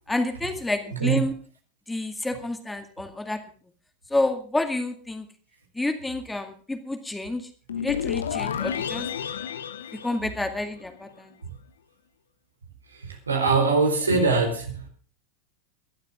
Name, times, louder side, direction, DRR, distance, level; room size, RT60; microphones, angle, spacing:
voice 1, 0.1-1.3 1.9-3.4 4.1-5.3 5.7-7.5 7.8-9.1 10.0-11.3, left 2 dB, 10° left, 7 dB, 2.1 m, -29 dB
voice 2, 0.9-1.2 11.4-11.5 12.9-14.9, right 4 dB, 85° right, 3 dB, 4.4 m, -23 dB
sound 1, 7.7-10.9, left 8 dB, 75° left, 1.2 m, -31 dB
21.0 x 12.0 x 3.7 m, 0.40 s
figure-of-eight pair, 90°, 0 cm